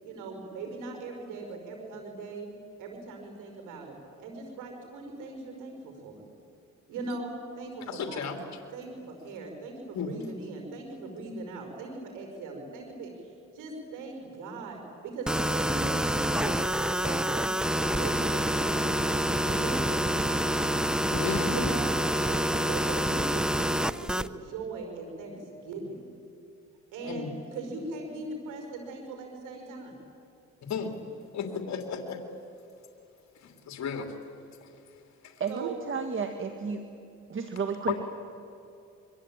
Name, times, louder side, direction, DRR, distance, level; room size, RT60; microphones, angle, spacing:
voice 1, 0.0-2.5 2.8-6.2 6.9-8.3 8.7-17.5 17.9-20.8 21.5-21.9 22.2-26.0 26.9-29.9 35.5-35.8, right 3 dB, 90° right, 3 dB, 5.6 m, -40 dB
voice 2, 7.9-8.4 9.9-10.1 21.1-21.7 27.0-27.3 30.6-31.0 31.3-32.2 33.3-34.1 34.6-34.7 35.2-35.4 37.9-38.0, left 6 dB, 65° left, 5 dB, 3.0 m, -34 dB
sound 1, 15.3-24.3, equal, 5° right, 0.7 m, -27 dB
voice 3, 35.4-36.8 37.3-38.0, right 5 dB, 40° right, 6 dB, 1.8 m, -32 dB
26.0 x 23.0 x 8.9 m, 2.7 s
cardioid pair, 90°, 30 cm